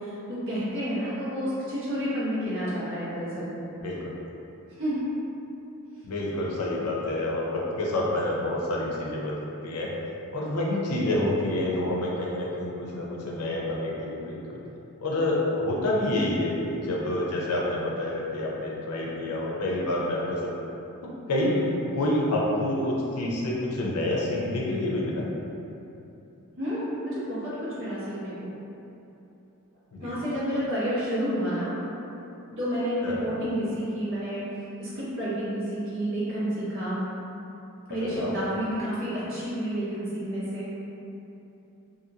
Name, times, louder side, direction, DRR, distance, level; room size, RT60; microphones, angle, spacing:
voice 1, 0.0-3.5 4.8-5.1 26.6-28.5 30.0-31.7 32.6-34.4 34.8-37.0 37.9-40.9, equal, 60° right, -11 dB, 1.1 m, -30 dB
voice 2, 3.8-4.1 6.0-9.4 9.6-9.9 10.3-14.6 15.0-20.5 21.3-25.3 29.9-30.1 33.0-33.3 37.9-38.3, left 1 dB, 80° left, -3 dB, 0.5 m, -28 dB
2.7 x 2.6 x 2.7 m, 2.9 s
head